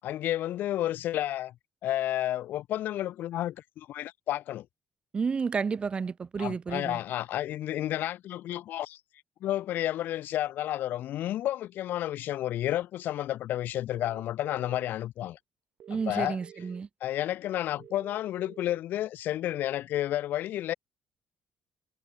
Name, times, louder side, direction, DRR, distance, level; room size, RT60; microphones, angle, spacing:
voice 1, 0.0-1.5 1.8-4.7 6.4-9.0 9.4-15.4 16.1-16.4 17.0-20.7, left 13 dB, 70° left, 0.4 m, -31 dB
voice 2, 5.1-7.0 15.9-16.9, right 5 dB, 30° right, 0.8 m, -31 dB
sound 1, 13.9-14.8 15.8-16.8 17.8-18.8, right 10 dB, 60° right, 5.4 m, -50 dB
cardioid pair, 125°, 3 cm